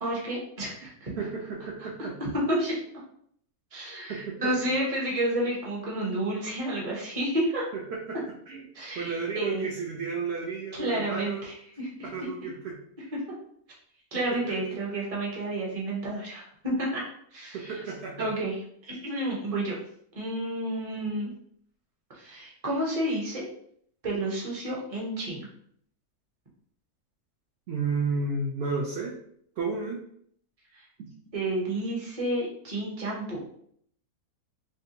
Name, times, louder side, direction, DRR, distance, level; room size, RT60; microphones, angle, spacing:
voice 1, 0.0-1.1 1.8-2.8 3.7-7.7 8.7-9.7 10.7-12.1 14.1-17.0 17.3-17.7 18.2-18.5 18.8-19.7 20.1-21.3 22.1-23.4 24.0-25.5 30.7-30.8 31.3-33.4, right 1 dB, 30° right, -4 dB, 0.7 m, -30 dB
voice 2, 1.2-2.1 4.1-4.5 7.9-8.2 8.5-8.6 9.0-11.5 12.0-12.8 17.5-18.3 27.7-29.1 29.6-30.0 31.0-31.1, right 4 dB, 65° right, -2 dB, 0.6 m, -32 dB
3.7 x 2.3 x 2.7 m, 0.66 s
omnidirectional pair, 1.6 m